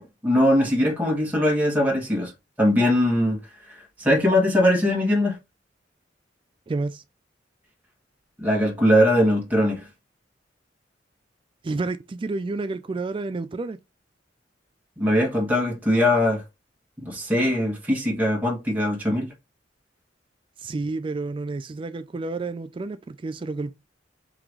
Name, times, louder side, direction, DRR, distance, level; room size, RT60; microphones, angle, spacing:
voice 1, 0.0-2.3 2.6-3.4 3.7-5.4 8.4-9.9 15.0-16.4 17.0-19.3, left 1 dB, 10° right, 1.4 m, -21 dB
voice 2, 6.7-7.0 11.6-13.8 20.6-23.7, right 3 dB, 30° right, 0.3 m, -30 dB
3.8 x 2.9 x 4.5 m
head